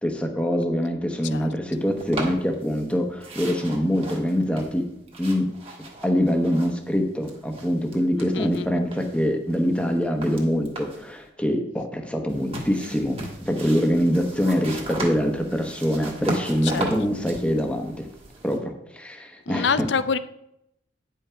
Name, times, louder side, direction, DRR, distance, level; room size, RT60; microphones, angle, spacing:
voice 1, 0.0-4.9 5.2-5.5 6.0-18.1 18.4-19.9, equal, 5° left, 4 dB, 1.0 m, -24 dB
sound 1, 2.0-2.9 3.2-7.0 7.2-8.6 8.9-11.1 12.3-18.6, right 2 dB, 30° right, 1.5 m, -37 dB
voice 2, 8.3-8.8 16.6-16.9 19.5-20.2, left 6 dB, 65° left, 14 dB, 0.5 m, -26 dB
9.5 x 5.6 x 5.0 m, 0.80 s
head